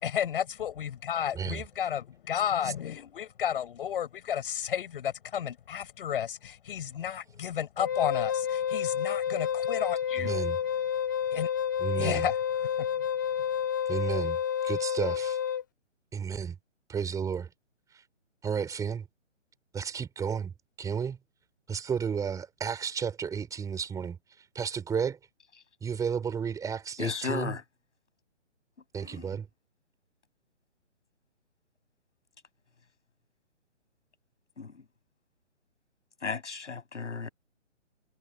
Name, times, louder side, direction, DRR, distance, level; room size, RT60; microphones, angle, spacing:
voice 1, 0.0-10.4 11.3-11.5 12.0-12.4 12.8-12.9, left 9 dB, 45° left, 6.1 m, -32 dB
voice 2, 1.3-1.6 2.6-2.7 10.2-10.6 11.8-12.3 13.9-15.4 16.1-16.5 16.9-17.5 17.9-18.0 18.4-19.1 19.7-20.5 20.8-21.2 21.7-24.2 24.5-25.2 25.8-27.6 28.9-29.5, right 7 dB, 10° right, 4.2 m, -32 dB
Wind instrument woodwind instrument, 7.8-15.6, left 8 dB, 15° left, 0.5 m, -30 dB
voice 3, 27.0-27.6 29.0-29.3 34.6-34.7 36.2-37.3, left 5 dB, 70° left, 7.5 m, -34 dB
figure-of-eight pair, 140°, 37 cm